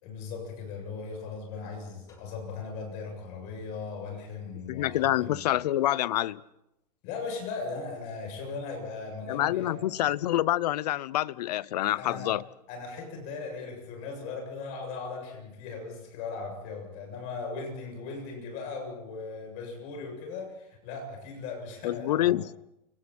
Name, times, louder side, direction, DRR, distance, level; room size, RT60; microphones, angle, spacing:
voice 1, 0.0-5.4 7.0-9.8 12.0-12.4 12.7-22.4, left 4 dB, 35° left, 7.5 m, -38 dB
sound 1, 2.1-3.9, left 2 dB, 15° left, 3.9 m, -57 dB
voice 2, 4.7-6.4 9.3-12.4 21.8-22.5, left 14 dB, 80° left, 0.8 m, -27 dB
29.5 x 25.0 x 4.4 m
supercardioid pair, 175°, 21 cm